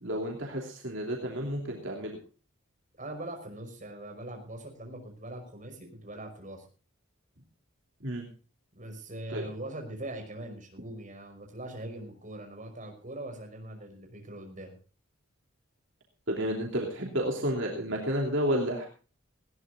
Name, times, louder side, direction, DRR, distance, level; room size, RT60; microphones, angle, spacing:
voice 1, 0.0-2.2 8.0-8.2 9.3-9.4 16.3-18.9, equal, 60° right, 0 dB, 3.1 m, -31 dB
voice 2, 3.0-6.6 8.8-14.7, right 1 dB, 40° right, 3 dB, 5.5 m, -41 dB
20.0 x 16.5 x 2.6 m, 0.37 s
head